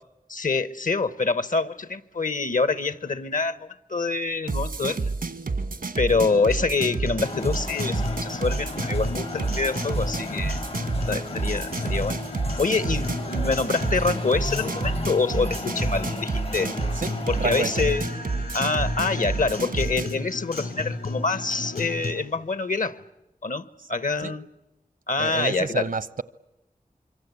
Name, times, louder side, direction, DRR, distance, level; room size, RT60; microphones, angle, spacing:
voice 1, 0.3-5.1 6.0-10.6 11.1-12.2 12.6-16.7 17.3-18.0 18.5-23.0 23.4-24.4 25.1-25.8, left 4 dB, 65° left, 1.2 m, -26 dB
sound 1, 4.5-20.2, right 3 dB, 90° right, 1.6 m, -30 dB
Guitar, 6.1-22.1, left 2 dB, 85° left, 6.2 m, -34 dB
sound 2, 7.2-17.8, left 3 dB, 45° left, 0.9 m, -36 dB
voice 2, 17.0-17.9 24.2-24.3 25.2-26.2, right 5 dB, 70° right, 0.9 m, -29 dB
26.0 x 24.5 x 8.3 m
wide cardioid pair, 55°, 14 cm